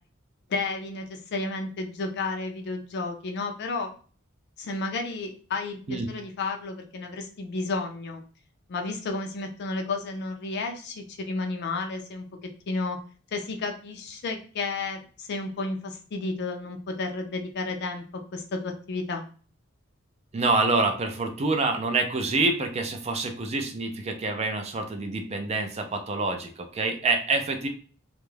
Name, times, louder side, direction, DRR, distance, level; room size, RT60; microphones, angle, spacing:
voice 1, 0.5-3.9 4.6-8.2 8.7-12.3 12.7-13.0 13.3-19.2, left 3 dB, 55° left, 4 dB, 0.4 m, -32 dB
voice 2, 20.3-27.7, right 3 dB, 30° right, 4 dB, 0.4 m, -26 dB
2.3 x 2.1 x 3.1 m, 0.39 s
head